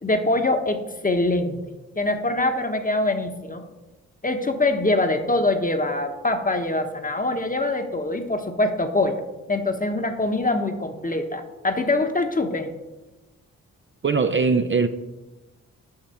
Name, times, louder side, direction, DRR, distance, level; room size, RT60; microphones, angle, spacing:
voice 1, 0.0-1.6 2.0-3.6 4.2-9.2 9.5-12.7, left 2 dB, 20° left, 7 dB, 1.2 m, -24 dB
voice 2, 14.0-14.9, right 4 dB, 30° right, 8 dB, 0.6 m, -20 dB
8.9 x 5.8 x 4.3 m, 1.1 s
supercardioid pair, 40°, 37 cm